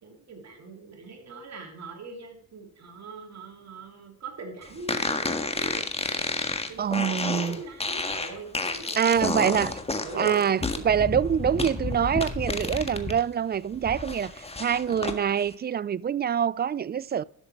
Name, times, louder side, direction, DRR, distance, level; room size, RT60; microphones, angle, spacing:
voice 1, 0.0-5.9 6.7-10.5, right 4 dB, 50° right, 3.3 m, -42 dB
sound 1, 4.9-13.2 13.5-15.2, left 3 dB, 15° left, 1.6 m, -30 dB
voice 2, 6.8-7.6 9.0-9.7 10.2-17.2, right 8 dB, 30° right, 0.4 m, -25 dB
11.5 x 6.6 x 4.7 m
supercardioid pair, 70°, 35 cm